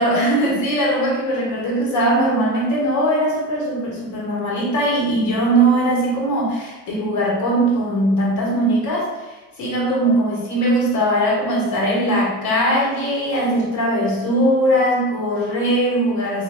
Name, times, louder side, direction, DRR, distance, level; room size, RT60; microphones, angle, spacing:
voice 1, 0.0-9.1 9.6-16.4, right 1 dB, 35° left, -3 dB, 1.4 m, -20 dB
3.3 x 3.1 x 2.9 m, 1.2 s
figure-of-eight pair, 65°, 49 cm